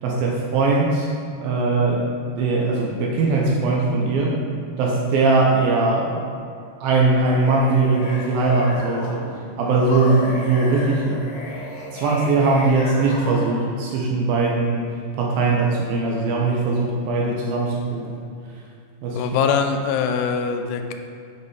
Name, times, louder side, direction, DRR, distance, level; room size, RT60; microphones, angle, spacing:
voice 1, 0.0-1.1 1.4-4.4 4.8-6.2 6.8-9.2 9.6-11.3 11.9-14.9 15.2-18.2 19.0-19.3, right 3 dB, 75° right, -2 dB, 2.3 m, -20 dB
sound 1, 7.1-9.3 9.8-13.7, left 1 dB, 60° left, 2.6 m, -33 dB
voice 2, 19.2-20.9, left 6 dB, 85° left, 6 dB, 2.6 m, -22 dB
9.6 x 5.2 x 4.8 m, 2.4 s
omnidirectional pair, 4.8 m